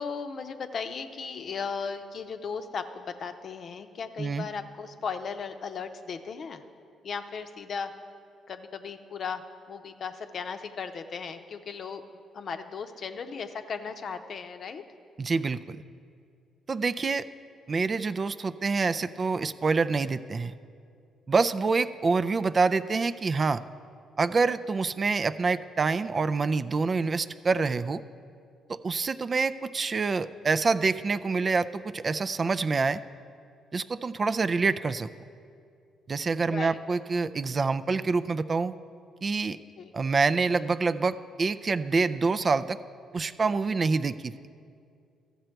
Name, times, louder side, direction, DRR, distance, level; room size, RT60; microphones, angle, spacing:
voice 1, 0.0-6.6 7.0-7.9 8.5-14.8 36.5-36.8 39.8-39.9, left 5 dB, 55° left, 8 dB, 0.7 m, -36 dB
voice 2, 15.2-15.8 16.7-17.3 17.7-20.5 21.3-23.6 24.2-28.0 28.7-33.0 33.7-35.1 36.1-38.8 39.2-39.6 39.9-42.8 43.1-44.3, right 4 dB, 40° right, 12 dB, 0.3 m, -26 dB
13.5 x 6.7 x 4.5 m, 2.4 s
supercardioid pair, 60°, 0 cm